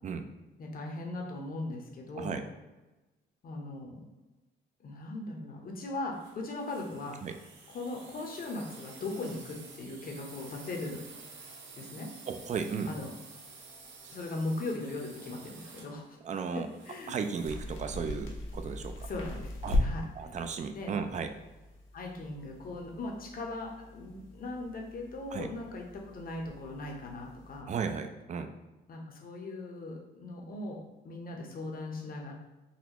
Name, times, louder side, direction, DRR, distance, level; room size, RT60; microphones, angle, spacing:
voice 1, 0.6-2.4 3.4-4.0 4.8-7.2 7.7-11.0 11.7-12.1 12.9-13.1 14.1-16.2 16.5-17.1 19.1-19.5 19.8-20.0 20.7-20.9 21.9-27.7 28.9-32.3, left 2 dB, 45° left, 1 dB, 0.8 m, -39 dB
sound 1, 6.1-17.7, right 4 dB, 70° right, 0.7 m, -51 dB
voice 2, 12.3-12.9 14.0-14.1 16.2-16.7 17.1-19.1 19.6-19.8 20.2-21.3 25.3-25.5 27.7-28.5, right 6 dB, 40° right, 8 dB, 0.4 m, -35 dB
sound 2, 17.4-27.6, left 1 dB, 80° left, 0.8 m, -39 dB
4.0 x 2.3 x 2.9 m, 1.1 s
cardioid pair, 90°, 20 cm